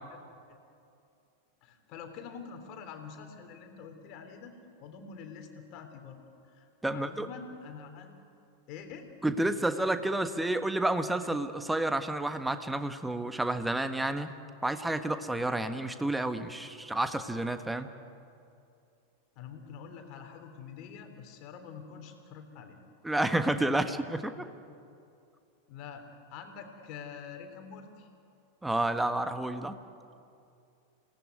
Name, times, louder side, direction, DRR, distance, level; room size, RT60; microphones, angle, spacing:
voice 1, 1.6-6.2 6.5-8.1 8.7-9.1 19.3-22.8 25.7-28.1, left 6 dB, 40° left, 6 dB, 3.4 m, -46 dB
voice 2, 6.8-7.3 9.2-14.3 14.6-17.9 23.0-24.3 28.6-29.7, right 1 dB, 5° right, 9 dB, 1.5 m, -30 dB
28.5 x 18.5 x 9.5 m, 2.6 s
figure-of-eight pair, 90°, 0 cm